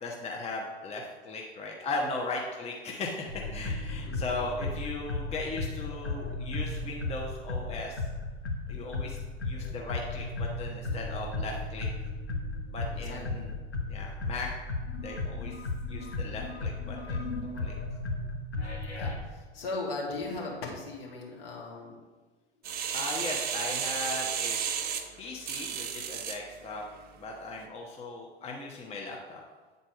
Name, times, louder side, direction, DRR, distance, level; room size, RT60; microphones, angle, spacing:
voice 1, 0.0-8.1 8.7-9.2 9.4-11.9 12.7-13.5 13.9-14.5 15.0-15.5 15.9-17.3 17.6-17.8 22.9-24.6 25.2-26.8 27.2-29.4, left 2 dB, 20° left, 0 dB, 0.9 m, -37 dB
sound 1, 3.3-19.1, left 2 dB, 85° left, 1.2 m, -35 dB
voice 2, 3.8-4.2 13.0-13.5 19.0-22.0, left 3 dB, 60° left, -3 dB, 2.1 m, -38 dB
sound 2, 22.6-26.4 27.0-27.1, right 8 dB, 30° right, 0.7 m, -33 dB
8.8 x 4.1 x 4.7 m, 1.3 s
figure-of-eight pair, 85°, 32 cm